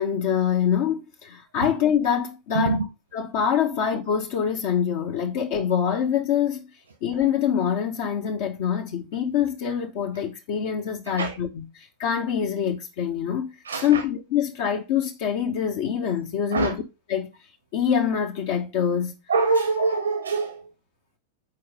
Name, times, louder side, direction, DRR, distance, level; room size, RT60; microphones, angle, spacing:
voice 1, 0.0-2.8 3.1-6.6 7.0-13.5 13.8-16.7 17.1-17.3 17.7-19.1, left 8 dB, 50° left, 1.1 m, -25 dB
voice 2, 2.5-2.9 11.1-11.4 13.6-14.0 16.5-16.8 19.3-20.7, right 3 dB, 70° right, 1.3 m, -24 dB
7.3 x 4.8 x 4.9 m
figure-of-eight pair, 90°, 0 cm